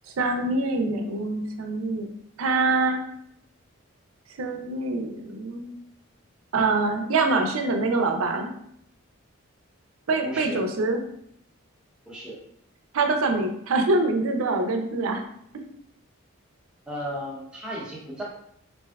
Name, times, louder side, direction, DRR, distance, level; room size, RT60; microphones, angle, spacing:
voice 1, 0.2-2.1 2.4-3.0 4.4-5.8 6.5-8.5 10.1-11.0 12.9-15.2 15.5-15.6, right 3 dB, 85° right, 5 dB, 0.5 m, -25 dB
voice 2, 10.2-10.6 12.1-12.4 16.9-18.2, equal, 5° right, -6 dB, 0.7 m, -34 dB
3.2 x 2.6 x 2.3 m, 0.71 s
head